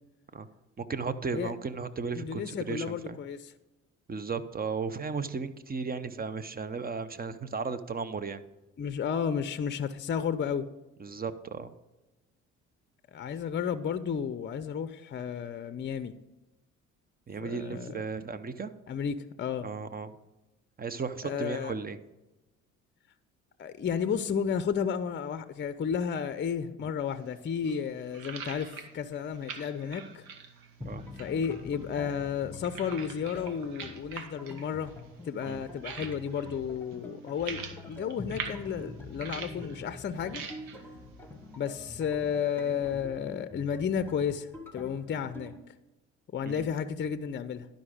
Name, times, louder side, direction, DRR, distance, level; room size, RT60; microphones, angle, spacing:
voice 1, 0.8-3.2 4.1-8.4 11.0-11.7 17.3-18.7 19.6-20.1 20.8-22.0 30.8-31.0 35.5-35.6 46.5-46.7, right 5 dB, 25° right, 12 dB, 0.8 m, -35 dB
voice 2, 2.1-3.4 8.8-10.7 13.1-16.1 17.4-18.0 18.9-19.7 21.2-21.7 23.6-30.2 31.2-34.9 35.2-40.4 41.6-45.5 46.3-47.7, left 7 dB, 35° left, 13 dB, 0.6 m, -32 dB
sound 1, 27.1-42.8, right 6 dB, 75° right, 1.2 m, -46 dB
sound 2, 30.8-45.6, left 2 dB, 5° left, 1.3 m, -45 dB
11.5 x 5.3 x 5.0 m, 1.0 s
hypercardioid pair, 65°, 34 cm